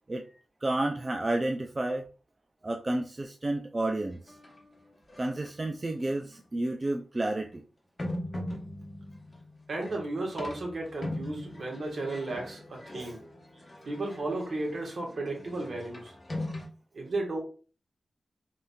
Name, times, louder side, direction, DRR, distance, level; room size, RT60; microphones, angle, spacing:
voice 1, 0.6-2.0 2.6-4.2 5.2-7.6 12.9-13.1, right 2 dB, 35° right, 3 dB, 0.4 m, -31 dB
sound 1, 4.1-4.6 5.1-5.7 6.4-6.5 8.0-16.7, left 1 dB, 35° left, 0.9 m, -40 dB
voice 2, 9.7-13.2 13.8-16.1 16.9-17.4, right 2 dB, 65° right, -2 dB, 1.3 m, -34 dB
3.6 x 2.7 x 2.3 m, 0.37 s
cardioid pair, 50°, 0 cm